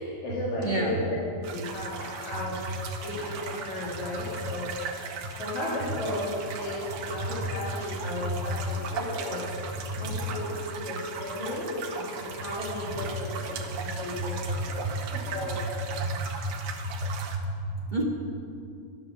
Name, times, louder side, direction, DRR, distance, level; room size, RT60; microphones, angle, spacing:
voice 1, 0.0-2.6 3.0-4.6 5.4-9.4 9.9-14.8 15.1-15.6, left 1 dB, 70° left, -8 dB, 3.8 m, -34 dB
voice 2, 0.6-1.0 7.2-7.3 7.8-7.9 8.3-8.5 9.9-10.0 13.5-13.6 14.4-15.1 15.9-16.5 16.8-18.0, right 1 dB, 30° right, -2 dB, 0.8 m, -31 dB
sound 1, 1.4-17.4, right 5 dB, 80° right, 2.5 m, -38 dB
12.5 x 11.5 x 6.8 m, 2.5 s
omnidirectional pair, 3.5 m